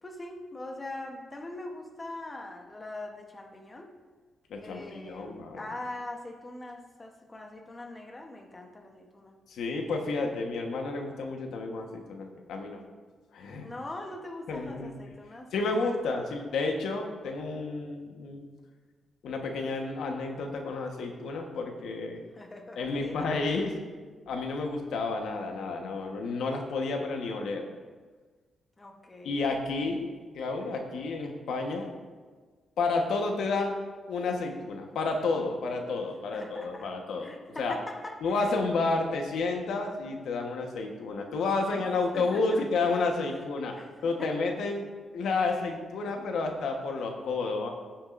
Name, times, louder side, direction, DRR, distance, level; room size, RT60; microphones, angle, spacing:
voice 1, 0.0-3.9 4.6-9.3 13.6-16.1 22.3-23.3 28.8-29.5 36.3-36.9 37.2-38.8 41.7-41.8 42.1-42.7 43.7-43.9 44.2-44.4, left 2 dB, 20° left, 2 dB, 1.0 m, -42 dB
voice 2, 4.5-5.6 9.5-12.8 13.3-13.7 14.5-14.9 15.5-18.5 19.2-22.3 22.8-23.7 24.3-27.6 29.2-30.1 30.3-31.9 32.8-33.7 34.1-37.3 37.6-37.8 38.2-43.7 44.0-44.9 45.1-47.7, left 3 dB, 80° left, 3 dB, 1.2 m, -31 dB
15.5 x 7.2 x 2.6 m, 1.4 s
cardioid pair, 125°, 0 cm